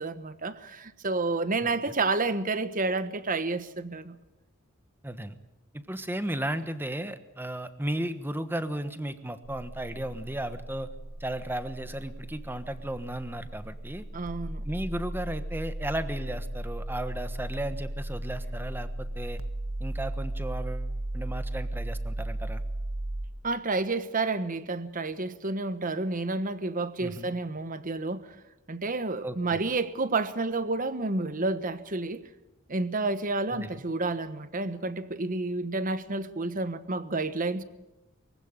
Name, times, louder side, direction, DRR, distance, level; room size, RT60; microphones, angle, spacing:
voice 1, 0.0-4.2 14.1-14.6 23.4-28.3 28.7-32.2 32.7-37.6, right 3 dB, 40° right, 1.2 m, -30 dB
voice 2, 5.0-5.4 5.7-10.9 11.2-14.0 14.6-19.4 19.8-20.9 21.1-22.6 27.0-27.3 29.2-29.6 33.5-33.8, right 1 dB, 10° right, 1.2 m, -35 dB
sound 1, 9.4-23.3, right 1 dB, 75° right, 1.7 m, -36 dB
23.5 x 16.0 x 9.1 m
head